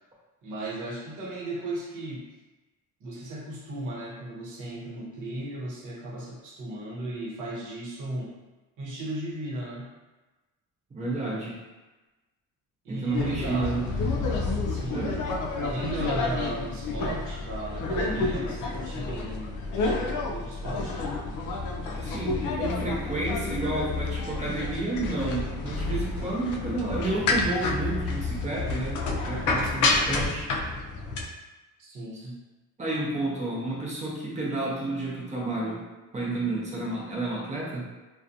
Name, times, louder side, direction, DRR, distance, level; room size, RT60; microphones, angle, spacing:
voice 1, 0.4-2.3 3.0-8.3 8.8-9.9 12.8-13.8 14.7-15.2 15.6-19.6 20.3-21.0 31.8-32.4, right 1 dB, 65° right, -5 dB, 0.9 m, -36 dB
voice 2, 10.9-11.6 12.9-13.8 14.9-15.2 22.0-30.5 32.8-35.9 36.1-37.9, right 2 dB, 20° right, -4 dB, 0.7 m, -31 dB
sound 1, 13.1-31.2, left 3 dB, 65° left, 0.5 m, -29 dB
2.4 x 2.2 x 2.6 m, 1.1 s
cardioid pair, 125°, 33 cm